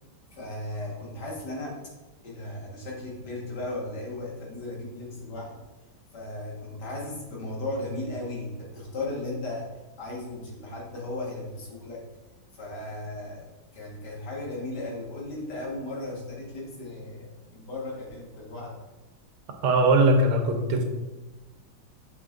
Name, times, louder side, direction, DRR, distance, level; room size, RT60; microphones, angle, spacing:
voice 1, 0.3-1.8 2.2-5.6 6.1-12.0 12.5-13.4 13.7-18.8, left 2 dB, 55° left, -3 dB, 2.0 m, -36 dB
voice 2, 19.6-20.8, right 2 dB, 90° right, 4 dB, 1.7 m, -20 dB
6.8 x 5.7 x 2.5 m, 1.1 s
omnidirectional pair, 2.3 m